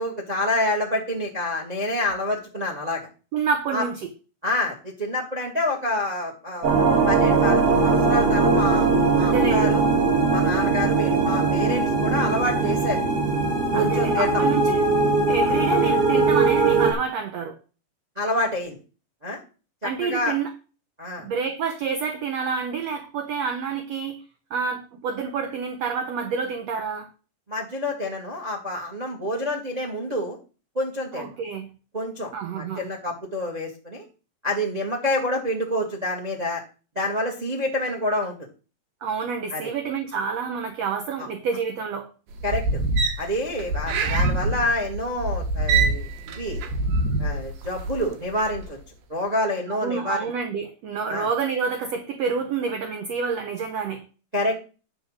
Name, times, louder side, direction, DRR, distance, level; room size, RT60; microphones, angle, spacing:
voice 1, 0.0-3.1 3.7-3.8 4.4-6.7 7.0-9.8 10.3-13.0 13.7-14.4 18.1-18.8 19.2-19.4 19.8-20.4 21.0-21.3 27.5-30.4 30.7-31.3 31.9-34.1 34.4-36.6 36.9-38.5 39.5-39.7 41.2-41.3 42.4-42.8 43.2-46.6 47.2-48.8 49.1-50.3 51.1-51.3 54.3-54.6, left 1 dB, 20° right, 1.1 m, -27 dB
voice 2, 3.3-4.0 9.2-9.7 13.7-14.8 15.3-17.6 19.8-20.5 21.2-24.2 24.5-27.1 31.1-31.7 32.3-32.9 39.0-42.1 49.7-54.0, right 6 dB, 65° right, 1.7 m, -28 dB
sound 1, 6.6-16.9, right 4 dB, 45° right, 2.8 m, -20 dB
sound 2, 42.3-48.1 48.4-48.7, right 2 dB, 85° right, 3.1 m, -25 dB
10.5 x 4.8 x 6.5 m
omnidirectional pair, 4.1 m